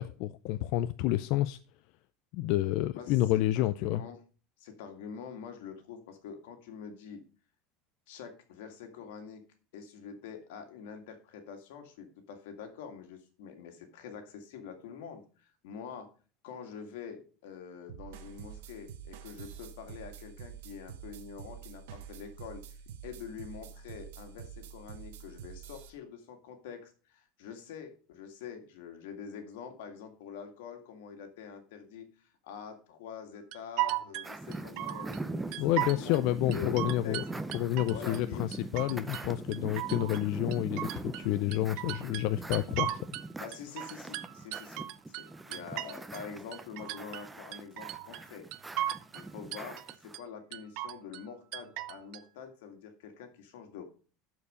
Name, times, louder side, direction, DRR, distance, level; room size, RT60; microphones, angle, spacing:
voice 1, 0.0-1.6 2.3-4.0 35.6-37.2 37.5-43.0, left 15 dB, 55° left, 12 dB, 0.4 m, -29 dB
voice 2, 3.5-4.2 4.6-7.2 8.1-9.4 9.7-16.1 16.4-37.3 37.9-38.5 43.4-48.5 49.1-53.8, left 7 dB, 90° left, 6 dB, 2.0 m, -46 dB
sound 1, 17.9-25.9, right 8 dB, 90° right, 1.3 m, -47 dB
sound 2, 33.5-35.2 35.5-36.2 36.5-38.2 38.5-39.3 39.5-41.3 41.5-43.3 43.5-46.2 46.5-47.3 47.5-48.2 48.5-49.2 49.5-50.2 50.5-51.2 51.5-52.2, right 14 dB, 55° right, 0.5 m, -36 dB
sound 3, 34.2-50.2, right 2 dB, 5° right, 0.5 m, -41 dB
12.0 x 4.7 x 4.9 m, 0.37 s
cardioid pair, 165°, 0 cm